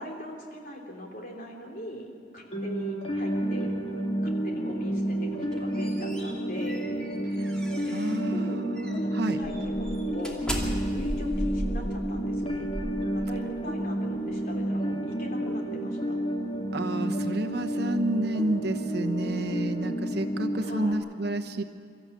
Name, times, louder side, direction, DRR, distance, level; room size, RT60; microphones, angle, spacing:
voice 1, 0.0-3.7 4.2-6.9 7.8-8.7 9.0-10.4 10.9-12.7 13.1-16.2 20.6-21.0, equal, 50° left, 0 dB, 3.2 m, -41 dB
sound 1, 2.5-20.9, right 1 dB, 35° left, 2.1 m, -30 dB
Room Door Close, 5.3-8.3 8.8-9.0 9.4-13.7, equal, 5° left, 2.5 m, -36 dB
voice 2, 7.9-9.4 16.7-21.6, right 1 dB, 65° right, 6 dB, 1.1 m, -30 dB
24.0 x 14.0 x 8.5 m, 2.2 s
head